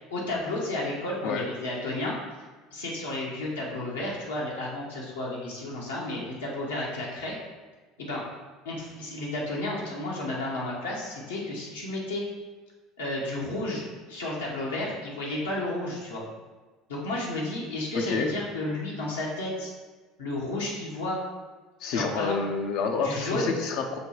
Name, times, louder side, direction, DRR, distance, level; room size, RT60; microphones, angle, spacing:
voice 1, 0.1-2.2 2.7-7.3 8.0-8.2 8.6-12.2 13.0-16.2 16.9-19.7 20.2-21.2 21.9-22.4 23.0-23.5, left 2 dB, 90° left, -4 dB, 1.1 m, -32 dB
voice 2, 17.9-18.3 21.8-24.0, left 4 dB, 65° left, 4 dB, 0.5 m, -28 dB
5.1 x 2.2 x 4.5 m, 1.3 s
hypercardioid pair, 75°, 0 cm